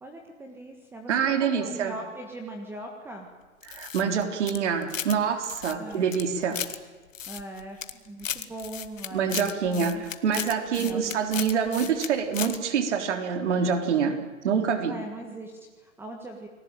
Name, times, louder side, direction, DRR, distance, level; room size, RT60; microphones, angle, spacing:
voice 1, 0.0-3.3 5.8-6.1 7.3-10.0 10.8-11.9 14.8-16.5, right 1 dB, 5° right, 3 dB, 1.6 m, -40 dB
voice 2, 1.1-1.9 3.7-6.6 9.1-14.2 14.4-15.0, right 6 dB, 55° right, 7 dB, 3.7 m, -26 dB
sound 1, 3.6-5.2 5.4-6.8 7.1-7.9 8.2-12.1 12.3-12.6, left 9 dB, 65° left, 2.1 m, -35 dB
30.0 x 20.5 x 9.0 m, 1.4 s
hypercardioid pair, 145°, 42 cm